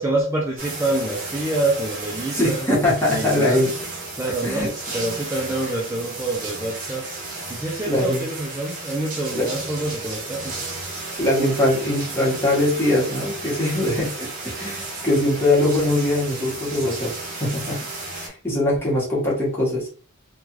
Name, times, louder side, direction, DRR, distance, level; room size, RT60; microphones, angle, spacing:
voice 1, 0.0-2.7 3.1-3.7 4.2-7.1 7.5-10.5, right 2 dB, 10° right, -4 dB, 0.5 m, -26 dB
sound 1, 0.6-18.3, right 3 dB, 40° right, 1.1 m, -33 dB
voice 2, 2.3-3.7 4.4-4.7 7.8-8.2 9.3-9.5 11.2-17.8 18.2-19.9, left 1 dB, 10° left, -6 dB, 1.3 m, -22 dB
3.3 x 2.4 x 3.0 m, 0.42 s
head